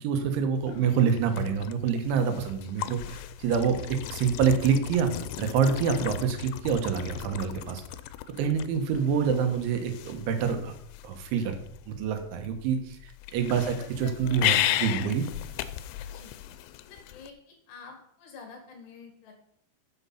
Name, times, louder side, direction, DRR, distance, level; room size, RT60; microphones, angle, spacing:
voice 1, 0.0-7.8 8.4-10.7 11.0-11.6 11.9-15.3, right 6 dB, 85° right, 6 dB, 3.6 m, -27 dB
sound 1, 0.6-17.3, left 13 dB, 85° left, 3.0 m, -35 dB
voice 2, 13.5-14.4 16.1-16.3 16.9-19.5, left 5 dB, 65° left, 3 dB, 3.8 m, -48 dB
8.4 x 7.9 x 5.6 m, 0.70 s
omnidirectional pair, 5.3 m